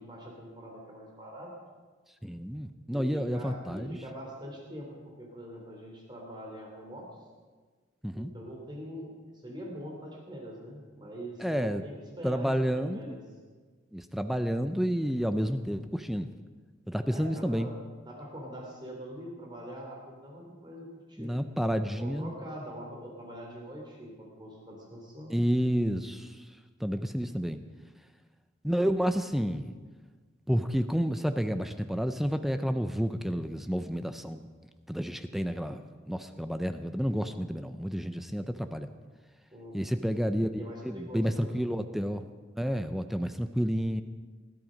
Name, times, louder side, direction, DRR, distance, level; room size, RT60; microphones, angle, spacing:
voice 1, 0.0-1.5 2.9-7.1 8.1-13.2 17.1-17.7 18.0-21.3 22.0-25.4 39.5-40.0 40.5-41.6, equal, 25° right, -1 dB, 3.4 m, -43 dB
voice 2, 2.2-4.0 8.0-8.3 11.4-11.8 12.2-13.0 13.9-16.3 16.9-17.7 21.2-22.3 25.3-26.4 26.8-27.6 28.6-29.7 30.5-34.5 34.9-38.9 39.7-42.2 42.6-44.0, equal, ahead, 9 dB, 0.5 m, -30 dB
20.5 x 14.0 x 5.2 m, 1.4 s
head